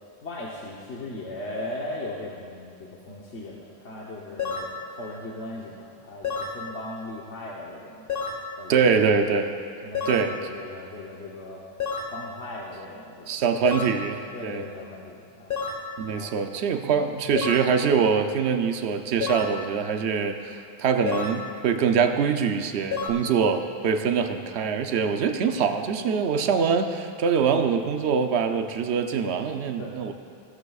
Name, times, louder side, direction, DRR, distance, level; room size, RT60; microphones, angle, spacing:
voice 1, 0.2-8.1 8.6-9.0 9.8-11.6 12.1-13.4 14.3-15.6 16.1-16.3 17.1-17.2 23.2-23.4 29.8-29.9, left 1 dB, 90° left, -4 dB, 1.4 m, -38 dB
sound 1, 4.4-4.8 6.2-6.6 8.1-8.5 9.9-10.3 11.8-12.2 13.7-14.0 15.5-15.9 17.4-17.7 19.2-19.6 21.1-21.4 22.9-23.1, left 5 dB, 55° left, 1.4 m, -30 dB
voice 2, 8.7-9.5 10.1-10.4 13.3-14.6 16.0-30.1, right 6 dB, 75° right, 6 dB, 0.9 m, -24 dB
17.0 x 13.0 x 2.4 m, 2.3 s
omnidirectional pair, 1.1 m